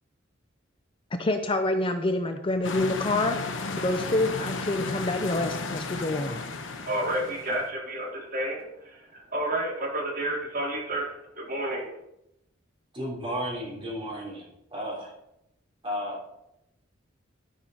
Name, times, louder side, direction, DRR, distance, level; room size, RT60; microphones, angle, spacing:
voice 1, 1.2-3.4 3.7-6.4, left 2 dB, 25° left, 6 dB, 0.6 m, -27 dB
sound 1, 2.6-7.7, left 3 dB, 70° left, 1.0 m, -34 dB
voice 2, 6.9-11.8, right 1 dB, 45° right, -5 dB, 4.1 m, -30 dB
voice 3, 12.9-15.1 15.8-16.2, equal, 25° right, -4 dB, 3.7 m, -33 dB
12.5 x 5.7 x 4.9 m, 0.82 s
head